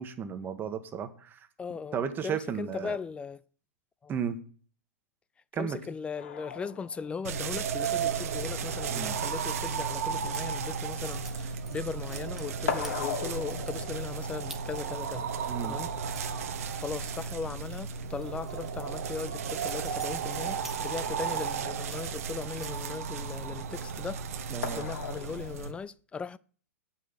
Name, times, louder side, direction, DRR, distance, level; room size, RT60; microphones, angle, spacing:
voice 1, 0.0-1.5 1.9-3.0 4.1-4.4 5.5-5.8 8.9-9.1 15.5-15.8 24.5-24.9, right 7 dB, 25° right, 1.4 m, -34 dB
voice 2, 1.6-2.0 2.2-3.4 4.0-4.1 5.6-15.3 15.6-15.9 16.4-24.2 24.8-26.4, left 5 dB, 15° left, 0.4 m, -38 dB
sound 1, 6.1-11.9 12.1-19.2 20.6-20.7 21.0-21.1 24.6-25.8, left 7 dB, 60° left, 1.7 m, -40 dB
sound 2, 7.2-25.7, right 6 dB, 60° right, 1.3 m, -34 dB
sound 3, 10.3-10.4 11.2-11.4 11.7-12.6 12.8-13.4 13.8-13.9 14.5-14.6 15.0-17.4 17.6-17.8 18.2-21.4 21.9-23.4 23.8-24.2 24.5-24.9, right 1 dB, ahead, 1.3 m, -50 dB
9.1 x 5.9 x 8.4 m
figure-of-eight pair, 110°, 9 cm